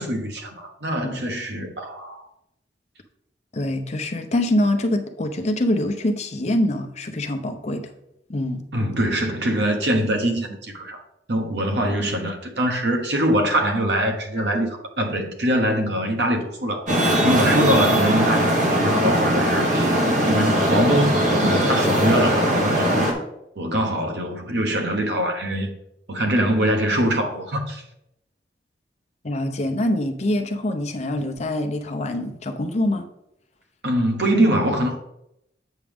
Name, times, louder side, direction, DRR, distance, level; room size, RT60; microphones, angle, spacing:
voice 1, 0.0-2.2 8.7-11.0 11.3-16.9 17.2-23.0 23.6-25.7 26.1-27.8 33.8-35.0, right 1 dB, 75° right, 1.2 m, -23 dB
voice 2, 3.5-7.9 8.3-8.6 29.2-33.1, left 1 dB, 40° left, 0.7 m, -24 dB
Traffic noise roadway noise, 16.9-23.1, equal, 45° right, 1.5 m, -20 dB
8.1 x 6.1 x 3.5 m
head